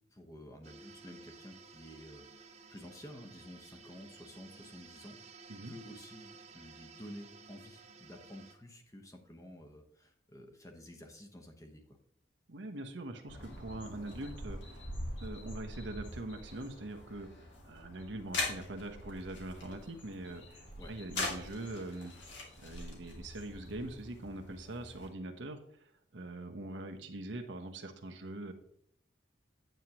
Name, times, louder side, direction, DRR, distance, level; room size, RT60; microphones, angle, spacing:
voice 1, 0.1-5.4 5.7-12.0 20.8-20.9, equal, 15° left, 3 dB, 1.1 m, -51 dB
sound 1, 0.6-8.5, right 4 dB, 35° right, 0.8 m, -54 dB
voice 2, 12.5-14.9 15.2-17.3 17.6-22.1 22.6-28.5, right 2 dB, 80° right, 4 dB, 1.0 m, -43 dB
sound 2, 13.3-25.1, left 2 dB, 80° left, 2.5 m, -43 dB
9.2 x 8.2 x 3.0 m, 0.69 s
head